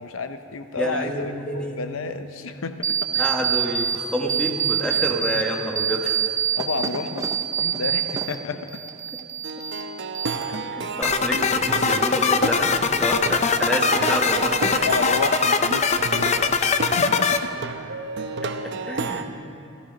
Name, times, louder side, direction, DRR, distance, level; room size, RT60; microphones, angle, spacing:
voice 1, 0.0-3.0 6.5-8.8 14.9-17.5, left 4 dB, 80° left, 9 dB, 0.7 m, -31 dB
voice 2, 0.8-1.8 3.1-6.3 10.8-14.9 18.8-19.3, equal, 5° left, 0 dB, 1.3 m, -28 dB
sound 1, 2.8-4.0 4.3-5.4 5.8-8.4 8.7-9.8 10.1-10.8, right 8 dB, 15° right, 0.7 m, -25 dB
Plucked string instrument, 9.4-19.2, right 3 dB, 60° right, 0.7 m, -31 dB
sound 2, 11.0-17.4, left 5 dB, 35° left, 0.5 m, -21 dB
14.5 x 14.0 x 5.2 m, 2.5 s
head